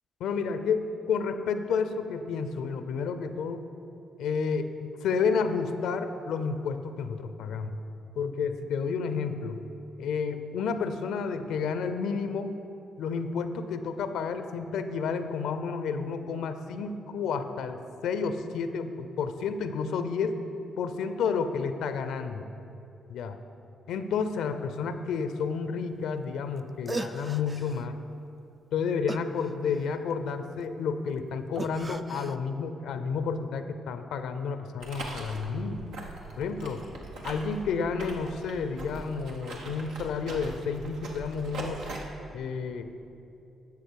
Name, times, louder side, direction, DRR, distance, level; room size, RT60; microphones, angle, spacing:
voice 1, 0.2-3.6 4.2-7.7 8.2-9.6 10.0-12.5 13.0-20.3 20.8-22.4 23.1-23.4 23.9-28.0 28.7-35.8 36.4-36.8 37.2-41.8 42.3-43.0, left 5 dB, 75° left, 9 dB, 0.5 m, -31 dB
sound 1, 26.6-26.7 26.9-27.9 29.1-30.1 31.6-32.4, right 3 dB, 30° right, 0.5 m, -37 dB
sound 2, 34.8-42.0, right 2 dB, 80° right, 1.2 m, -41 dB
10.5 x 7.3 x 4.7 m, 2.7 s
hypercardioid pair, 50°, 0 cm